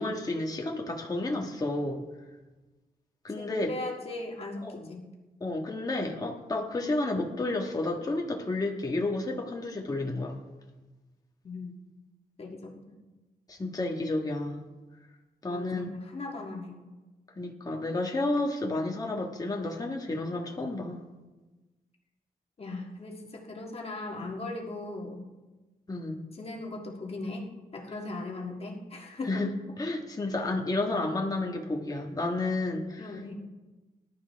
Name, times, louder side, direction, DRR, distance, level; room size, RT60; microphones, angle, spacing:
voice 1, 0.0-2.0 3.2-3.8 4.6-4.9 5.4-10.4 13.5-14.6 15.4-15.9 17.4-21.0 25.9-26.2 29.2-29.5 29.8-33.3, left 2 dB, 25° left, 0 dB, 1.5 m, -31 dB
voice 2, 3.4-5.0 11.4-11.7 12.4-12.9 15.5-16.8 22.6-25.2 26.4-29.4 33.0-33.3, left 2 dB, 40° left, 0 dB, 1.8 m, -38 dB
19.0 x 11.5 x 3.5 m, 1.2 s
wide cardioid pair, 145°, 15 cm